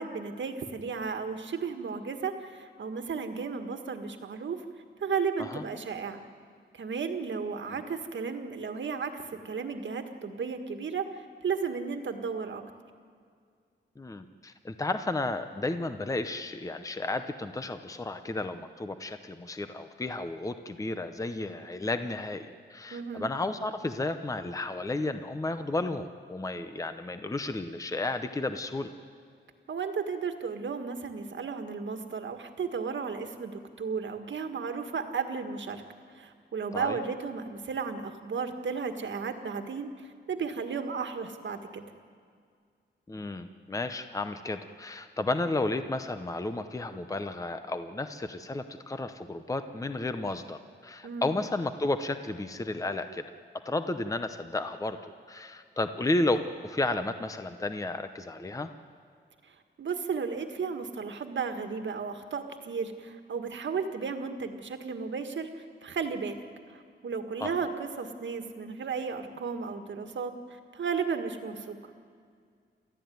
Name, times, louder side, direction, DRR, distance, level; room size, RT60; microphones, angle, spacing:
voice 1, 0.0-4.6 5.0-6.3 6.7-12.6 22.9-23.3 29.7-35.8 36.1-41.8 51.0-51.3 59.5-66.4 66.7-71.9, right 5 dB, 75° right, 7 dB, 1.8 m, -34 dB
voice 2, 14.0-28.9 36.7-37.0 43.1-53.2 53.6-55.0 55.3-58.7 67.4-67.5, left 2 dB, 15° left, 9 dB, 0.8 m, -32 dB
29.0 x 14.0 x 9.4 m, 2.1 s
wide cardioid pair, 160°, 19 cm